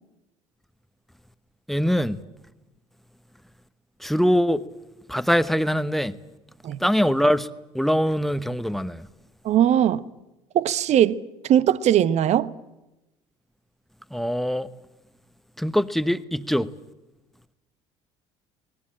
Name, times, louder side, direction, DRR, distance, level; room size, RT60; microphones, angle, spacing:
voice 1, 1.7-2.2 4.0-4.7 5.1-6.2 6.8-7.5 7.7-9.1 14.1-14.7 15.6-16.7, equal, ahead, 1.0 m, -23 dB
voice 2, 9.4-10.0 10.5-11.2 11.5-12.5, right 10 dB, 45° right, 1.0 m, -19 dB
27.0 x 20.0 x 8.7 m
figure-of-eight pair, 60°, 17 cm